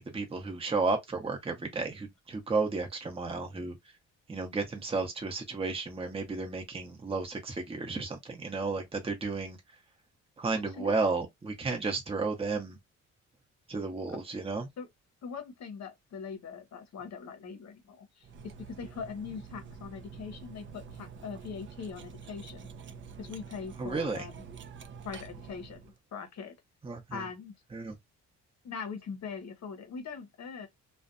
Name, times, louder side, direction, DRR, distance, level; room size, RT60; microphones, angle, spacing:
voice 1, 0.0-3.8 4.3-9.6 10.4-12.8 13.7-14.7 23.8-24.3 26.8-27.3 27.7-28.0, right 3 dB, 20° right, 0.8 m, -33 dB
voice 2, 10.5-11.0 14.8-14.9 15.2-22.7 23.2-24.4 25.0-26.5 27.1-27.5 28.6-30.7, left 6 dB, 60° left, 0.8 m, -41 dB
Cutlery silverware, 18.2-26.0, right 6 dB, 40° right, 0.5 m, -47 dB
2.5 x 2.2 x 2.4 m
cardioid pair, 90°, 30 cm